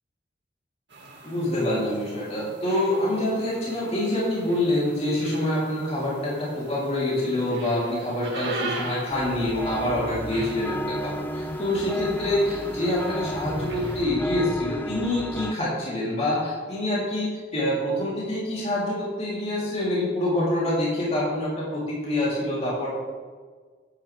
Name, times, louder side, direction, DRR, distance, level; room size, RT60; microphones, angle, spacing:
sound 1, 0.9-14.0, right 2 dB, 80° right, 2.2 m, -41 dB
voice 1, 1.2-22.9, left 1 dB, 35° left, -6 dB, 3.5 m, -26 dB
sound 2, 9.1-15.5, equal, 10° left, 0.3 m, -33 dB
12.5 x 9.3 x 3.5 m, 1.5 s
head